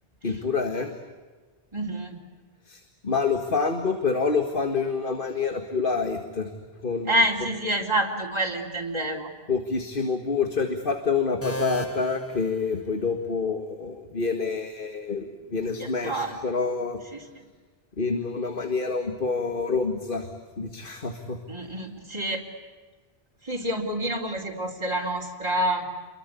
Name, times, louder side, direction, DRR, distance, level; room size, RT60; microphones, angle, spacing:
voice 1, 0.2-0.9 2.6-6.5 6.8-7.1 9.5-17.0 18.0-21.4, left 4 dB, 60° left, 6 dB, 2.1 m, -27 dB
voice 2, 1.7-2.2 7.1-9.3 15.8-16.4 21.5-22.4 23.4-25.9, right 1 dB, 25° right, -2 dB, 3.6 m, -27 dB
sound 1, 11.4-13.3, equal, 15° left, 1.8 m, -35 dB
30.0 x 23.5 x 8.4 m, 1.4 s
omnidirectional pair, 1.0 m